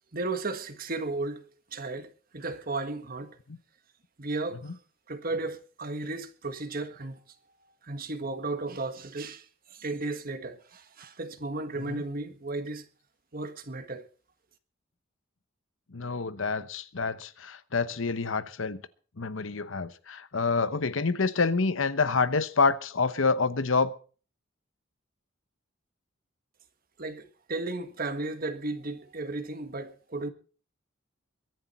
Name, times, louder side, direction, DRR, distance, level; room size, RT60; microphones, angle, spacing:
voice 1, 0.1-3.4 4.2-4.7 5.1-7.2 7.8-12.9 13.3-14.1 27.0-30.3, right 2 dB, 45° right, 1.5 m, -34 dB
voice 2, 15.9-18.8 19.2-23.9, left 4 dB, 80° left, 0.9 m, -27 dB
23.0 x 10.0 x 4.3 m
head